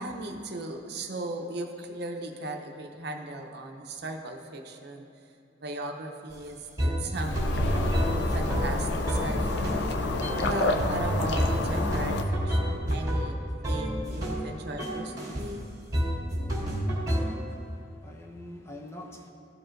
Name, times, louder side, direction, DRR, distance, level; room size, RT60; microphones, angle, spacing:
voice 1, 0.0-5.1 5.6-9.8 10.5-13.4 13.6-15.7, right 2 dB, 60° right, 0.6 m, -37 dB
sound 1, 6.3-6.4 6.8-9.9 10.2-10.5 10.8-14.4 14.8-15.5 15.9-17.2, equal, 20° right, 1.7 m, -29 dB
sound 2, 7.1-12.2, left 2 dB, 60° left, 0.5 m, -29 dB
voice 2, 17.2-19.3, left 1 dB, 15° left, 0.6 m, -46 dB
14.0 x 4.7 x 2.5 m
head